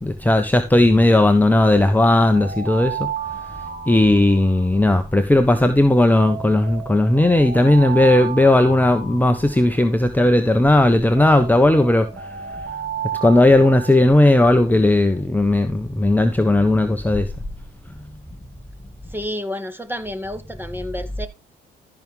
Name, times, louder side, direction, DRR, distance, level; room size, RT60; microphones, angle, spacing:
voice 1, 0.0-3.1 3.9-12.1 13.2-17.3, left 1 dB, 10° left, 1.2 m, -16 dB
Alarm, 1.5-5.6 6.2-10.6 11.2-15.0, right 8 dB, 55° right, 2.9 m, -33 dB
voice 2, 19.1-21.3, left 1 dB, 10° right, 2.0 m, -30 dB
14.0 x 6.2 x 3.7 m
supercardioid pair, 65°, 21 cm